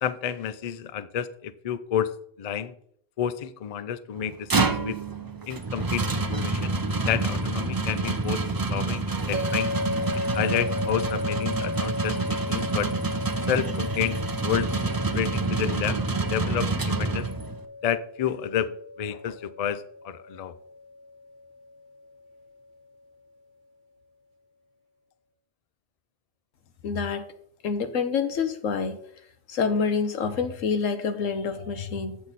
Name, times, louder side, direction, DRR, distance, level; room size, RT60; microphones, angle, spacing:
voice 1, 0.0-2.7 3.2-5.0 5.5-6.8 7.1-9.7 10.3-12.9 13.5-14.8 15.1-16.0 16.3-17.3 17.8-20.5, left 9 dB, 60° left, 14 dB, 0.4 m, -30 dB
sound 1, 4.2-17.6, right 3 dB, 30° right, 0.4 m, -28 dB
sound 2, 9.3-22.5, left 2 dB, 45° right, 0.8 m, -35 dB
voice 2, 26.8-27.2 27.6-29.0 29.5-32.2, left 5 dB, 85° left, 9 dB, 1.3 m, -27 dB
8.8 x 7.8 x 4.1 m, 0.67 s
omnidirectional pair, 1.3 m